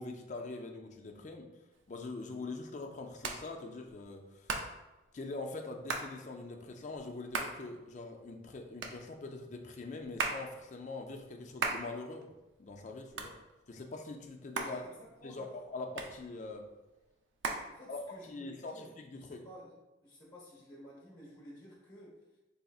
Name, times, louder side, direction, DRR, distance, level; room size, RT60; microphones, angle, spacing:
voice 1, 0.0-1.5 1.9-4.6 5.1-12.3 12.6-13.3 13.7-14.8 15.2-16.6 17.9-18.0 18.2-19.4, left 3 dB, 40° left, 3 dB, 0.4 m, -43 dB
Hands, 1.7-18.4, right 4 dB, 70° right, 0.4 m, -42 dB
voice 2, 14.6-15.6 17.7-19.7 20.0-22.4, equal, 20° left, -4 dB, 1.1 m, -54 dB
4.1 x 3.4 x 2.3 m, 1.1 s
head